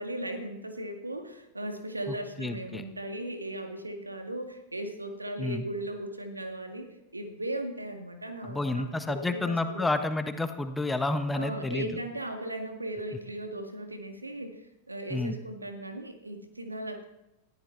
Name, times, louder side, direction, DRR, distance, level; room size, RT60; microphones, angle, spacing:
voice 1, 0.0-9.9 11.3-17.0, right 1 dB, 80° right, 5 dB, 2.1 m, -37 dB
voice 2, 2.1-2.8 5.4-5.6 8.4-11.9 15.1-15.3, left 2 dB, 10° left, 8 dB, 1.3 m, -30 dB
20.0 x 14.5 x 4.1 m, 0.90 s
figure-of-eight pair, 90°, 0 cm